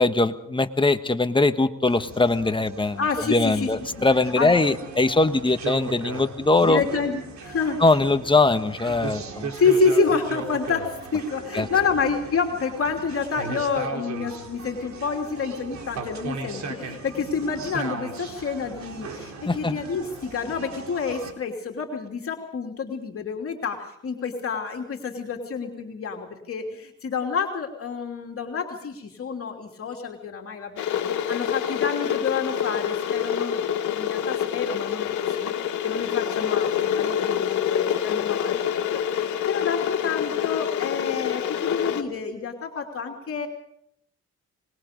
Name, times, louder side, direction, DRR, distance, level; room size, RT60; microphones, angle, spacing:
voice 1, 0.0-3.0 3.3-6.8 7.8-9.5 11.5-11.7 19.5-19.8, left 2 dB, 15° left, 9 dB, 1.4 m, -21 dB
sound 1, 1.9-21.3, right 4 dB, 65° right, 3.9 m, -37 dB
voice 2, 3.0-4.1 4.4-4.7 6.6-7.8 9.5-30.9 31.3-43.5, left 5 dB, 50° left, 2 dB, 3.0 m, -28 dB
Water / Boiling, 30.8-42.0, left 9 dB, 75° left, 2.1 m, -26 dB
25.5 x 21.5 x 5.2 m, 0.74 s
cardioid pair, 90°, 30 cm